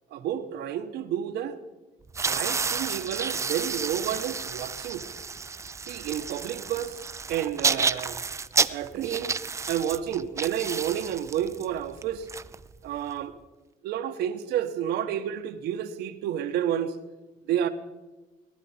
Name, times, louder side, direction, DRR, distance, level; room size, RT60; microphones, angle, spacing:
voice 1, 0.1-1.6 2.2-5.0 5.9-8.2 8.7-9.4 9.7-12.3 12.8-13.3 13.8-17.0 17.5-17.7, right 10 dB, 80° right, 1.0 m, -30 dB
sound 1, 2.1-13.1, right 5 dB, 15° right, 0.3 m, -31 dB
19.0 x 10.5 x 4.3 m
cardioid pair, 110°, 17 cm